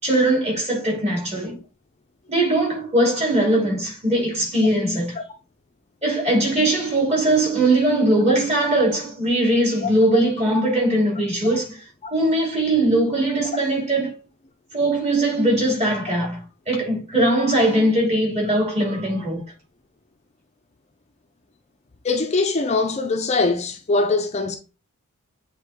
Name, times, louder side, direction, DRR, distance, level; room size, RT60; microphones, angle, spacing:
voice 1, 0.0-1.6 2.3-5.1 6.0-11.8 12.1-14.1 14.7-19.4, right 1 dB, 30° right, 3.2 m, -20 dB
voice 2, 22.0-24.6, left 3 dB, 30° left, 0.5 m, -22 dB
7.9 x 3.7 x 3.6 m
head